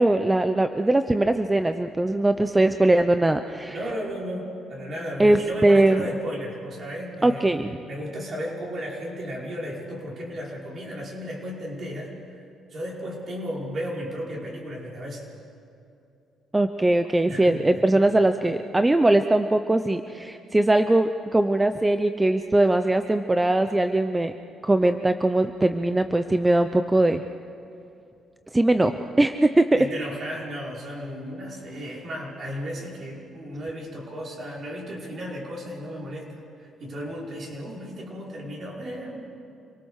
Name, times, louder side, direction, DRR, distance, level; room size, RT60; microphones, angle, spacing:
voice 1, 0.0-3.8 5.2-6.0 7.2-7.7 16.5-24.3 24.6-27.2 28.5-29.8, right 2 dB, 15° right, 8 dB, 0.7 m, -21 dB
voice 2, 3.7-12.4 12.7-15.3 17.3-17.8 29.8-39.4, equal, 50° right, -3 dB, 5.4 m, -34 dB
27.5 x 19.0 x 6.5 m, 2.6 s
cardioid pair, 90°, 0 cm